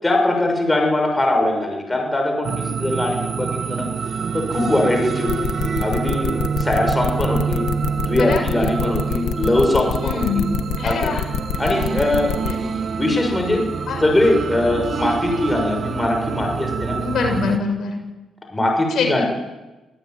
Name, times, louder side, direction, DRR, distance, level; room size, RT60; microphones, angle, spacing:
voice 1, 0.0-3.9 4.3-5.5 5.8-6.3 6.6-7.6 8.1-10.4 10.8-11.1 11.6-13.6 14.0-17.0 18.5-19.3, left 2 dB, 15° left, 2 dB, 6.6 m, -21 dB
sound 1, 2.4-17.6, right 6 dB, 50° right, 1.9 m, -26 dB
sound 2, 5.3-12.5, left 11 dB, 90° left, 1.6 m, -26 dB
voice 2, 10.0-10.5 10.8-11.2 12.5-12.6 13.9-14.0 17.0-17.9 18.9-19.3, left 5 dB, 65° left, 4 dB, 7.0 m, -24 dB
25.0 x 18.0 x 9.4 m, 1.1 s
cardioid pair, 90°, 0 cm